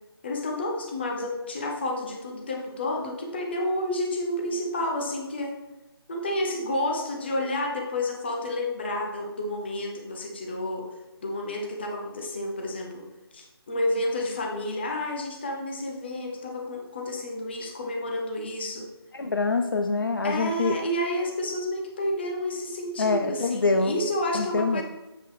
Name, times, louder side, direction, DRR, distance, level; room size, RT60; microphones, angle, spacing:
voice 1, 0.2-5.6 6.1-10.9 11.2-13.1 13.3-18.9 20.2-24.8, left 1 dB, 25° left, 1 dB, 0.9 m, -30 dB
voice 2, 19.1-20.8 23.0-24.0 24.3-24.8, left 3 dB, 55° left, 6 dB, 0.5 m, -25 dB
7.6 x 5.2 x 3.4 m, 1.0 s
figure-of-eight pair, 155°, 13 cm